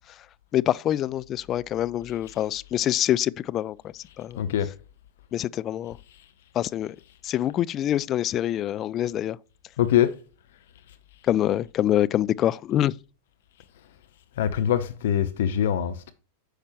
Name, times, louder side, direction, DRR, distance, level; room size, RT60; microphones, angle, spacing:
voice 1, 0.5-4.4 5.3-6.0 6.5-7.0 7.2-9.4 11.2-13.0, left 12 dB, 30° left, 0.3 m, -25 dB
voice 2, 4.4-4.7 9.8-10.1 14.4-16.1, left 10 dB, 55° left, 0.7 m, -23 dB
9.5 x 6.6 x 3.0 m
figure-of-eight pair, 90°, 0 cm